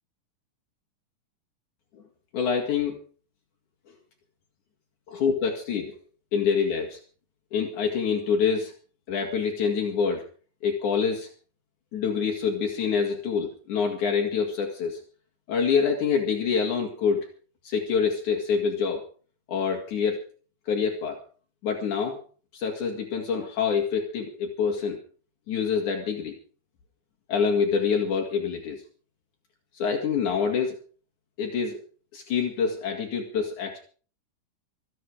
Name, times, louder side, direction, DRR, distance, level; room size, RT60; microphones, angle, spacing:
voice 1, 2.3-3.0 5.1-6.0 6.3-7.0 7.5-8.7 9.1-10.2 10.6-11.3 11.9-15.0 15.5-17.3 17.6-19.0 19.5-20.2 20.7-21.2 21.6-22.2 22.5-25.0 25.5-26.3 27.3-28.8 29.8-30.8 31.4-31.8 32.1-33.8, left 6 dB, 70° left, 2 dB, 3.5 m, -26 dB
25.0 x 9.2 x 4.8 m, 0.40 s
omnidirectional pair, 3.7 m